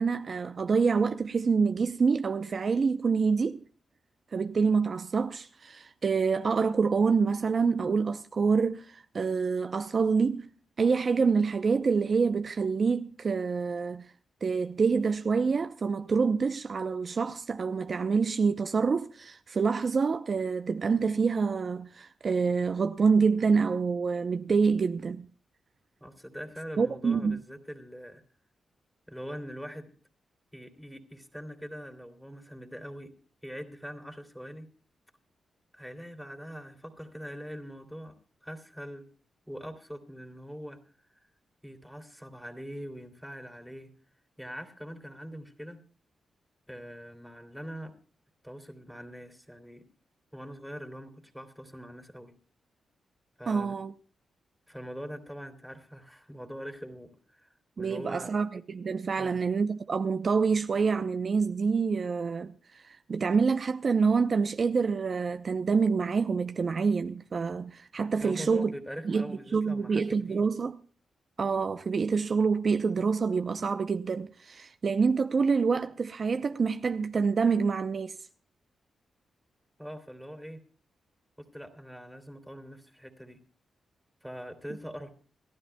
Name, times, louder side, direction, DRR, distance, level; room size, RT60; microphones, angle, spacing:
voice 1, 0.0-3.6 4.3-10.5 10.8-14.1 14.4-25.3 26.8-27.4 53.5-53.9 57.8-68.7 69.0-70.8 71.4-78.2, right 5 dB, 55° right, 0.7 m, -27 dB
voice 2, 26.0-28.2 29.1-29.9 30.5-33.1 33.4-34.7 35.7-38.1 38.4-39.1 39.5-40.8 41.1-41.3 41.6-43.9 44.4-45.8 46.7-47.9 48.4-49.9 50.3-52.3 53.4-53.8 54.7-57.5 57.8-58.4 59.1-59.4 68.2-70.4 79.8-80.6 81.4-83.4 84.2-85.1, equal, ahead, 2.9 m, -43 dB
28.0 x 12.0 x 2.3 m
cardioid pair, 65°, 0 cm